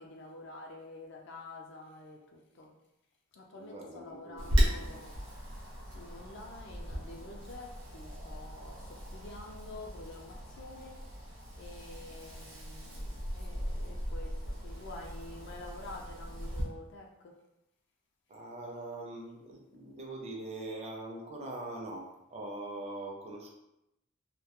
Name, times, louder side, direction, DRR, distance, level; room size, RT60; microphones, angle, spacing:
voice 1, 0.0-2.7 3.3-5.1 5.9-17.4, left 2 dB, 60° left, 1 dB, 0.4 m, -48 dB
voice 2, 3.5-5.0 18.3-23.5, right 2 dB, 30° right, -1 dB, 0.4 m, -42 dB
Wind, 4.4-16.6, equal, 70° right, 0.8 m, -36 dB
2.1 x 2.1 x 2.8 m, 0.87 s
head